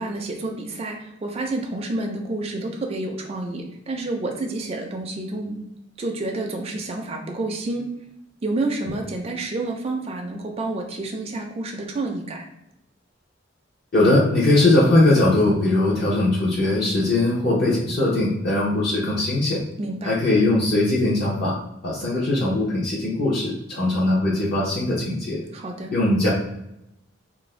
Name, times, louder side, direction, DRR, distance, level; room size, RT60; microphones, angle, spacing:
voice 1, 0.0-5.6 6.0-7.9 8.4-12.5 19.8-20.1 25.5-25.9, right 2 dB, 35° right, 2 dB, 0.4 m, -29 dB
voice 2, 13.9-19.6 20.0-21.6 21.8-25.4 25.9-26.3, left 2 dB, 55° left, -6 dB, 0.7 m, -20 dB
2.4 x 2.0 x 3.1 m, 0.83 s
head